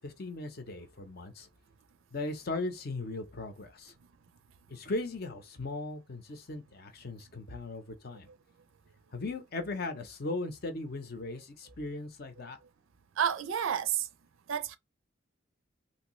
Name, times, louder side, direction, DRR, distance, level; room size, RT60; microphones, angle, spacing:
voice 1, 0.0-1.5 2.1-3.9 4.7-8.3 9.1-12.6, left 2 dB, 50° left, 0.7 m, -38 dB
voice 2, 13.2-14.1 14.5-14.8, right 8 dB, 70° right, 0.5 m, -30 dB
3.0 x 2.6 x 3.1 m
head